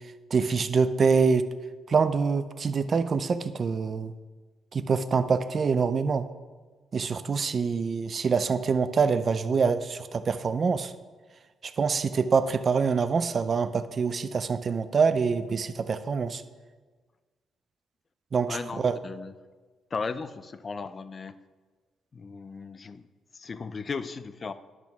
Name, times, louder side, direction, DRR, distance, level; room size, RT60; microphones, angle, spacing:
voice 1, 0.3-1.5 1.9-4.1 4.7-6.3 6.9-10.9 11.6-16.4 18.3-19.0, right 5 dB, 40° right, 12 dB, 0.4 m, -25 dB
voice 2, 18.5-19.3 19.9-21.3 22.1-23.0 23.3-24.5, left 4 dB, 35° left, 12 dB, 0.4 m, -36 dB
10.5 x 6.1 x 3.6 m, 1.4 s
cardioid pair, 100°, 0 cm